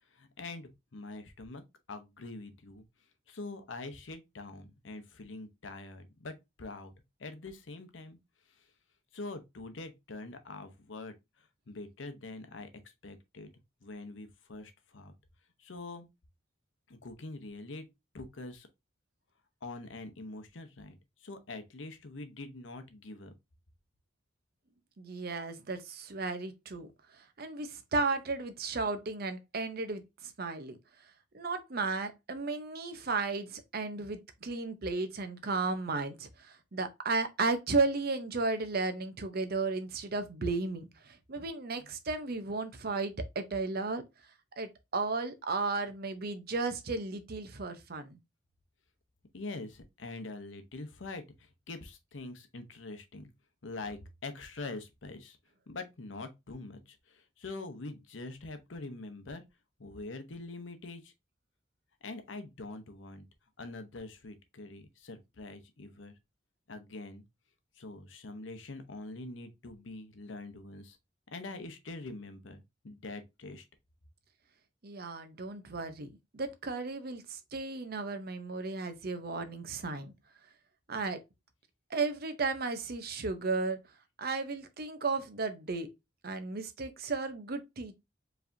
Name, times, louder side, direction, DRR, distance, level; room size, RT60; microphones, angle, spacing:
voice 1, 0.1-1.6 1.9-2.8 3.3-6.9 7.2-8.2 8.5-8.7 9.1-12.7 13.0-13.5 13.8-15.1 15.6-16.1 16.9-17.9 18.1-18.7 19.6-23.3 41.8-41.9 49.3-53.3 53.6-55.4 55.7-59.4 59.8-61.1 62.0-63.3 63.6-66.1 66.7-67.2 67.8-71.0 71.3-73.7, left 2 dB, 85° left, 0.8 m, -44 dB
voice 2, 25.0-26.9 27.2-30.8 31.3-44.0 44.6-48.2 74.8-80.1 80.9-81.2 81.9-83.8 84.2-85.9 86.2-88.0, right 3 dB, 55° right, 0.7 m, -34 dB
4.9 x 3.3 x 2.7 m
head